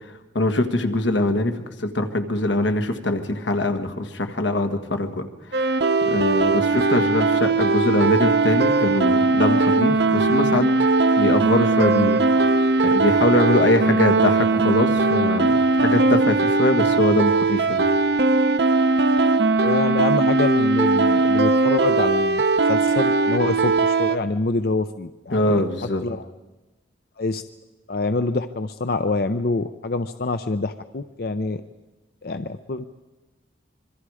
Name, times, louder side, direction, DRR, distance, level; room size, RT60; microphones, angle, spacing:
voice 1, 0.4-5.2 5.5-5.7 6.1-10.7 11.2-12.6 12.8-17.9 25.3-26.0, left 1 dB, 85° left, 6 dB, 1.8 m, -22 dB
sound 1, 5.5-24.2, right 3 dB, 65° right, 0.8 m, -19 dB
voice 2, 19.6-26.3 27.2-27.4 27.9-31.6 32.2-32.8, left 3 dB, 55° left, 10 dB, 0.6 m, -26 dB
26.0 x 23.0 x 4.9 m, 1.1 s
head